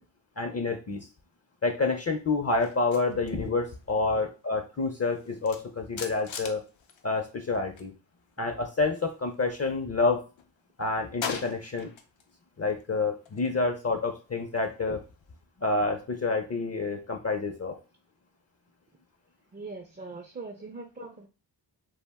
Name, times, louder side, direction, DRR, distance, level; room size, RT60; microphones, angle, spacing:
voice 1, 0.4-1.0 1.6-6.6 7.0-7.9 8.4-10.2 10.8-11.9 12.6-15.0 15.6-17.8, left 3 dB, 35° left, 4 dB, 0.4 m, -28 dB
sound 1, 2.6-7.9 8.2-9.8 10.2-12.3 12.6-15.4, left 6 dB, 90° left, 0.5 m, -44 dB
voice 2, 19.5-21.3, right 3 dB, 25° right, 2 dB, 0.4 m, -41 dB
2.4 x 2.1 x 3.4 m, 0.32 s
wide cardioid pair, 60°, 45 cm